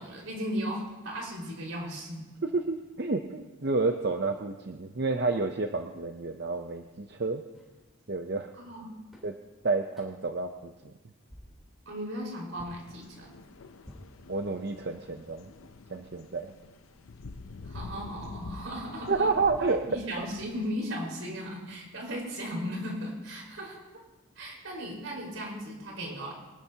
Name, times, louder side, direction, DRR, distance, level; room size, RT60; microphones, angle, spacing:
voice 1, 0.0-2.2 8.6-9.0 11.8-13.3 17.6-19.3 19.9-23.8 24.3-26.3, equal, 80° right, -2 dB, 4.9 m, -36 dB
voice 2, 2.4-7.4 8.1-8.5 9.2-9.3 9.6-10.7 14.3-15.5 15.9-16.5 19.1-20.0, right 3 dB, 55° right, 5 dB, 0.6 m, -30 dB
sound 1, 7.5-7.8 8.7-8.8 9.1-9.4 9.9-10.3 10.8-11.0 11.3-11.7 12.6-12.9 13.8-14.8, equal, ahead, 3.5 m, -52 dB
sound 2, 12.8-20.7, left 3 dB, 90° left, 0.6 m, -47 dB
24.0 x 12.5 x 2.9 m, 1.1 s
head